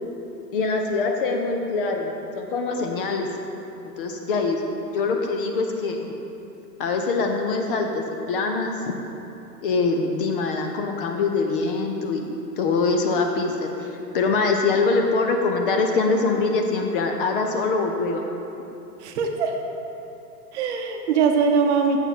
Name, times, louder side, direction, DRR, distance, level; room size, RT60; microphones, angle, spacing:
voice 1, 0.5-3.3 4.0-4.6 4.9-6.1 6.8-8.9 9.6-12.3 12.6-18.2, left 3 dB, 35° left, 3 dB, 0.6 m, -24 dB
voice 2, 19.0-19.6 20.5-22.0, right 5 dB, 45° right, 3 dB, 0.8 m, -21 dB
8.0 x 7.0 x 4.1 m, 2.9 s
hypercardioid pair, 135°, 49 cm